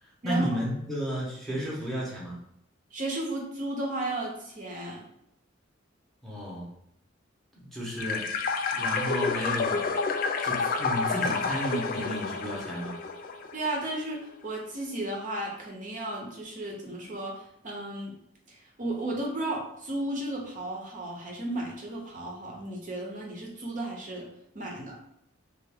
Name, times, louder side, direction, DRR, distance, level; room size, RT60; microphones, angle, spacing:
voice 1, 0.0-2.4 6.2-6.7 7.5-8.3 8.7-9.8 10.4-13.0, equal, ahead, -5 dB, 0.8 m, -33 dB
voice 2, 2.9-5.0 13.5-18.1 18.5-24.3 24.5-25.0, right 1 dB, 40° right, -1 dB, 0.7 m, -34 dB
sound 1, 8.0-13.7, left 4 dB, 45° left, 0.3 m, -29 dB
3.3 x 2.4 x 3.4 m, 0.76 s
head